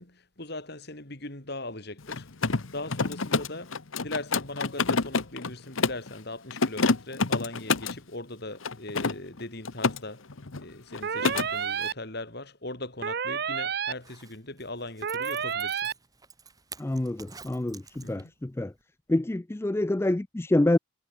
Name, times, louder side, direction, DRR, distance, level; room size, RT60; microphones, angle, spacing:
voice 1, 0.0-2.3 2.7-10.3 10.6-15.9 18.0-18.3, left 2 dB, 50° left, 3.8 m, -39 dB
Mechanisms, 2.0-6.1 6.5-8.0 8.6-10.0 10.3-10.6 10.9-11.5, left 4 dB, 70° left, 1.1 m, -28 dB
sound 1, 11.0-11.9 13.0-13.9 15.0-15.9, right 7 dB, 50° right, 0.6 m, -30 dB
Zipper (clothing), 13.9-18.5 18.8-18.9, right 5 dB, 15° right, 2.2 m, -49 dB
voice 2, 16.8-18.7 19.1-20.8, left 1 dB, 10° left, 0.3 m, -27 dB
head